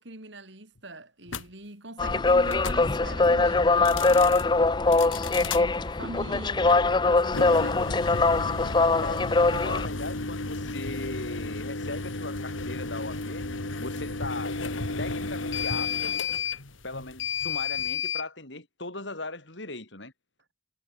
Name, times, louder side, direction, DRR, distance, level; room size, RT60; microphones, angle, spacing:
voice 1, 0.0-4.5 5.2-8.1, right 2 dB, 70° right, 4.9 m, -42 dB
sound 1, 1.3-1.4 2.5-2.8 3.7-4.4 4.9-5.6 7.2-18.3, left 4 dB, 85° left, 2.4 m, -33 dB
Zagreb Train Station Announcement, 2.0-9.9, left 3 dB, 20° left, 0.5 m, -22 dB
voice 2, 9.0-13.5 13.8-14.6 15.0-16.1 16.8-20.1, left 2 dB, 70° left, 5.3 m, -38 dB
head